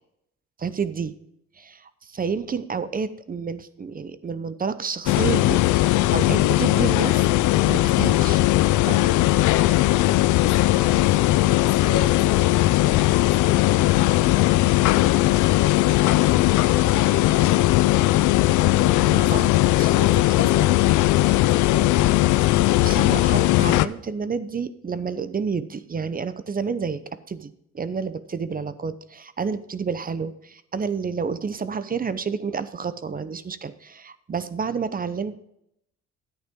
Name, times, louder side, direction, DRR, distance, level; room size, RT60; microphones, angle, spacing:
voice 1, 0.6-1.1 1.6-5.6 6.1-7.3 7.6-8.4 8.8-9.2 18.5-19.9 20.4-20.5 21.2-21.5 22.8-27.0 27.3-35.4, right 5 dB, 30° right, 13 dB, 0.7 m, -30 dB
sound 1, 5.1-23.9, left 16 dB, 85° left, 0.5 m, -19 dB
voice 2, 10.4-14.7 14.9-16.2 16.9-18.2 18.6-20.8 21.3-22.0 23.3-23.9, left 5 dB, 50° left, 5 dB, 1.5 m, -36 dB
10.5 x 8.9 x 3.7 m, 0.76 s
cardioid pair, 90°, 30 cm